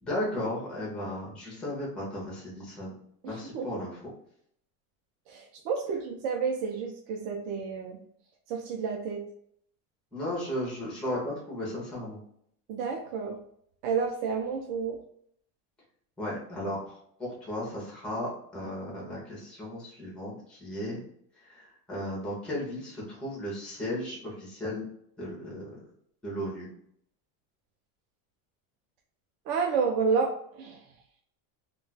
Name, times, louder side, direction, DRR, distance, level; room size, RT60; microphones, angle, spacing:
voice 1, 0.0-2.9 3.2-4.1 10.1-12.2 16.2-21.0 21.4-24.9 25.2-25.8 26.2-26.7, left 1 dB, ahead, -5 dB, 0.3 m, -35 dB
voice 2, 3.2-3.7 5.3-8.0 8.5-9.2 12.7-13.4 13.8-15.0 29.5-30.3 30.6-30.8, right 5 dB, 60° right, 2 dB, 0.5 m, -30 dB
2.2 x 2.2 x 3.8 m, 0.68 s
cardioid pair, 165°, 45 cm